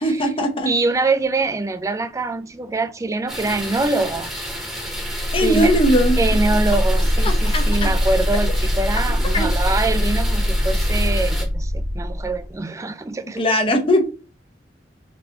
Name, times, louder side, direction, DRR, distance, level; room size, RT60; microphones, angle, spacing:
voice 1, 0.0-0.7 5.3-6.2 7.2-7.9 9.3-9.5 13.4-14.0, equal, 30° left, 0.7 m, -19 dB
voice 2, 0.7-4.3 5.4-5.7 6.2-13.4, right 3 dB, 15° right, 0.3 m, -24 dB
sound 1, 3.3-11.4, equal, ahead, 1.0 m, -31 dB
sound 2, 5.0-12.6, equal, 50° right, 1.0 m, -21 dB
3.8 x 2.8 x 2.8 m
head